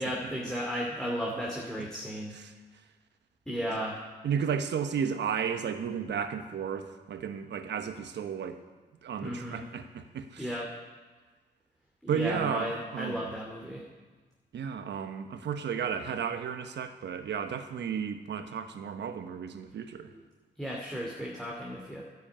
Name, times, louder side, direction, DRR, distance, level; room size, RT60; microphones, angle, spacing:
voice 1, 0.0-2.3 3.5-4.0 9.2-9.6 10.4-10.7 12.0-13.8 20.1-20.2 20.6-22.0, equal, 5° left, -3 dB, 2.8 m, -34 dB
voice 2, 4.2-8.6 9.0-10.5 12.1-13.3 14.5-20.1, right 7 dB, 75° right, 8 dB, 1.1 m, -33 dB
10.5 x 8.4 x 8.7 m, 1.3 s
supercardioid pair, 55°, 18 cm